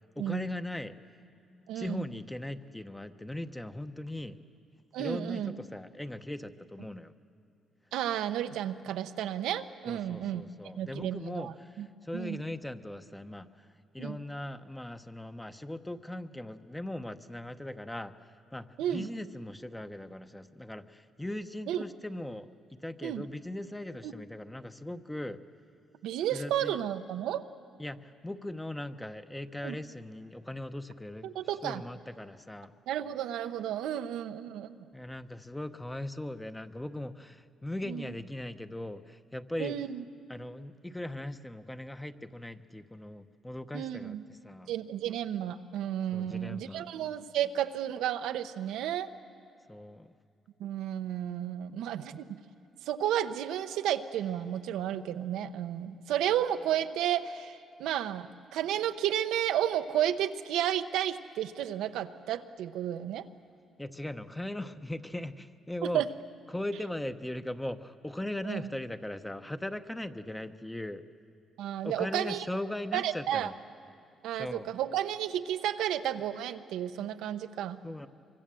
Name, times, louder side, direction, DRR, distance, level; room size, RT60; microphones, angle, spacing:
voice 1, 0.2-1.0 1.7-4.4 5.0-7.1 9.9-13.7 13.9-22.5 22.8-25.4 26.3-26.8 27.8-31.3 31.6-32.7 34.9-39.7 40.3-44.7 46.1-46.9 49.7-50.2 63.8-66.0 66.5-71.0 71.8-73.5 74.4-74.7 77.8-78.1, left 1 dB, 10° left, 10 dB, 0.9 m, -39 dB
voice 2, 1.7-2.0 4.9-5.6 7.9-10.5 10.8-11.9 12.1-12.4 14.0-14.2 18.8-19.1 21.7-21.8 23.0-23.3 24.0-24.1 26.0-27.4 29.6-29.8 31.2-31.8 32.9-34.7 37.9-38.0 39.6-40.0 43.7-44.2 44.7-49.1 50.6-52.4 52.8-63.3 65.8-66.1 68.4-68.6 71.6-72.4 72.9-73.5 74.2-77.8, right 11 dB, 90° right, 9 dB, 0.8 m, -32 dB
24.5 x 24.0 x 7.7 m, 2.4 s
cardioid pair, 90°, 0 cm